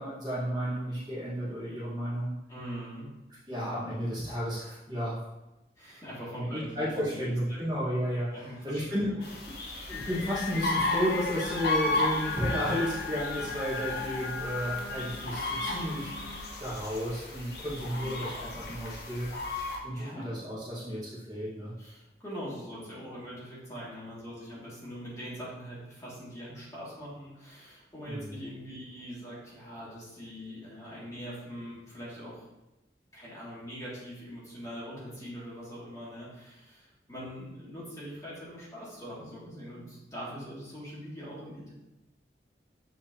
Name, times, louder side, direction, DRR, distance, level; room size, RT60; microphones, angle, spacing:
voice 1, 0.0-2.3 3.5-5.2 6.3-8.3 8.6-9.1 9.9-16.2 16.6-19.3 19.8-21.7 28.1-28.4, equal, 25° right, -9 dB, 1.4 m, -32 dB
voice 2, 2.5-3.1 5.8-7.6 8.3-9.1 9.6-10.0 17.9-18.3 19.9-20.2 21.8-32.5 33.1-41.7, equal, 20° left, -8 dB, 2.2 m, -42 dB
sound 1, 9.2-19.8, left 2 dB, 65° left, 1.1 m, -34 dB
Singing, 9.9-16.5, left 5 dB, 85° left, 0.5 m, -39 dB
7.1 x 4.7 x 2.8 m, 0.96 s
head